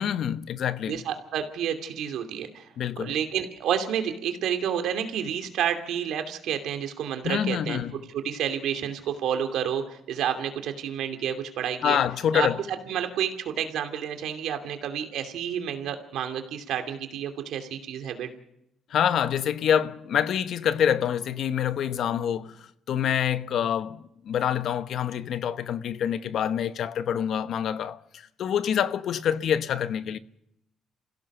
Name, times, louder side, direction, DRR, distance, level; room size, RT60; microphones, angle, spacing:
voice 1, 0.0-1.0 2.8-3.1 7.2-8.0 11.8-12.6 18.9-30.2, left 9 dB, 70° left, 1.0 m, -26 dB
voice 2, 0.9-2.7 3.0-12.0 12.3-12.5 12.9-18.3, right 9 dB, 80° right, 2.7 m, -30 dB
27.5 x 16.5 x 6.7 m
cardioid pair, 90°, 0 cm